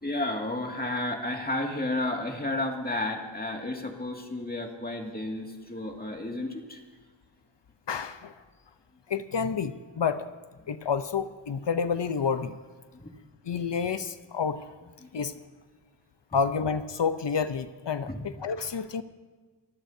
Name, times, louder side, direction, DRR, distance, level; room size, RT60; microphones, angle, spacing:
voice 1, 0.0-6.8 12.9-13.1 15.0-15.2 16.3-16.4 18.0-18.2, left 1 dB, 20° left, 1 dB, 2.2 m, -32 dB
voice 2, 7.9-8.3 9.1-10.3 10.7-12.5 13.5-14.6 15.1-15.3 16.3-18.1 18.4-19.0, left 6 dB, 60° left, 11 dB, 0.8 m, -29 dB
28.5 x 14.5 x 2.7 m, 1.4 s
wide cardioid pair, 75°, 49 cm